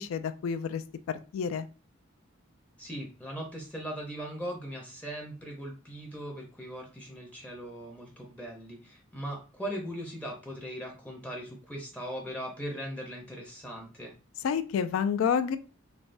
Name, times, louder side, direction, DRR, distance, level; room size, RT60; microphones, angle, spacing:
voice 1, 0.0-1.7 14.4-15.6, left 7 dB, 90° left, 13 dB, 0.3 m, -29 dB
voice 2, 2.8-14.1, equal, 5° left, 0 dB, 0.5 m, -39 dB
3.3 x 2.1 x 2.5 m, 0.35 s
head